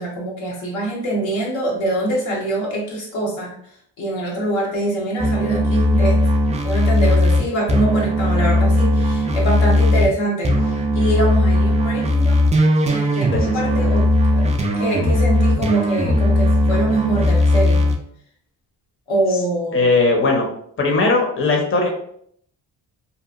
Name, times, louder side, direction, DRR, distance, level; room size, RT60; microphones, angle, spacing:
voice 1, 0.0-3.5 4.0-6.2 6.6-12.4 12.9-14.1 14.3-14.5 14.7-17.9 19.1-19.9, right 1 dB, 80° left, -3 dB, 1.1 m, -24 dB
sound 1, 5.2-10.1 10.4-18.0, left 1 dB, 15° right, 0.3 m, -17 dB
voice 2, 13.3-13.9 19.7-20.5 20.8-21.9, left 3 dB, 30° left, 0 dB, 0.8 m, -18 dB
2.9 x 2.2 x 2.4 m, 0.66 s
supercardioid pair, 65°, 45 cm